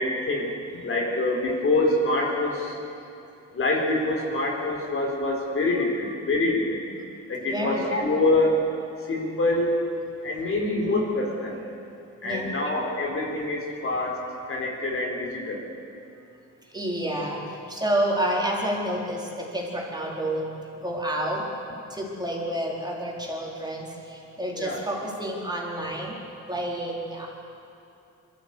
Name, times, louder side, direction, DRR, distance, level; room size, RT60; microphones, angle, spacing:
voice 1, 0.0-2.8 3.5-6.8 7.3-8.7 9.0-11.6 12.2-15.6 24.5-24.8, left 2 dB, 45° left, -1 dB, 4.1 m, -25 dB
voice 2, 7.5-8.0 10.6-11.1 12.2-12.5 16.6-20.5 20.8-21.4 21.9-26.2 26.5-27.3, right 1 dB, 15° right, -3 dB, 4.3 m, -29 dB
22.0 x 14.0 x 8.3 m, 2.6 s
cardioid pair, 90°, 30 cm